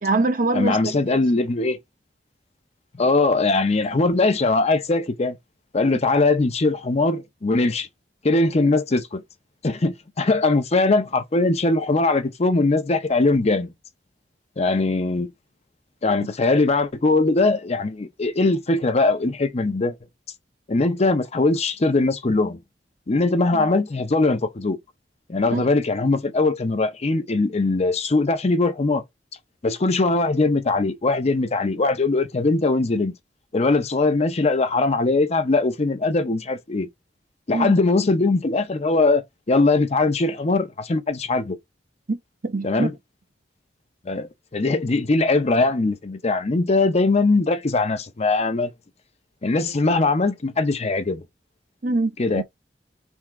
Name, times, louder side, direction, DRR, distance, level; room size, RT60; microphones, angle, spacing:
voice 1, 0.0-1.2 5.9-6.0 23.5-23.7 25.5-25.6 37.5-37.7 42.1-42.2 42.4-42.9 51.8-52.4, right 2 dB, 50° right, 0.8 m, -24 dB
voice 2, 0.5-1.8 3.0-5.4 5.7-7.9 8.2-9.2 9.6-13.7 14.6-15.3 16.0-19.9 20.7-22.6 23.1-24.8 25.3-29.0 29.6-33.2 33.5-36.9 37.5-41.6 42.6-42.9 44.1-48.7 49.4-51.2 52.2-52.4, left 3 dB, 35° left, 0.6 m, -21 dB
3.6 x 2.8 x 4.5 m
head